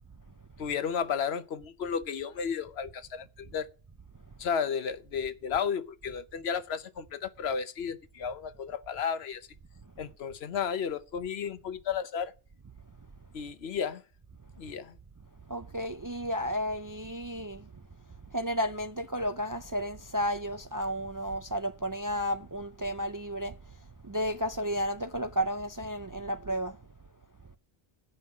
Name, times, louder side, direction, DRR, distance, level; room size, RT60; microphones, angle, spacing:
voice 1, 0.6-3.7 4.4-9.5 10.0-12.3 13.3-14.0 14.6-15.0, left 7 dB, 85° left, 1.0 m, -33 dB
voice 2, 15.5-17.7 18.3-26.8, equal, 30° right, 0.3 m, -33 dB
9.5 x 5.6 x 8.3 m
omnidirectional pair, 1.0 m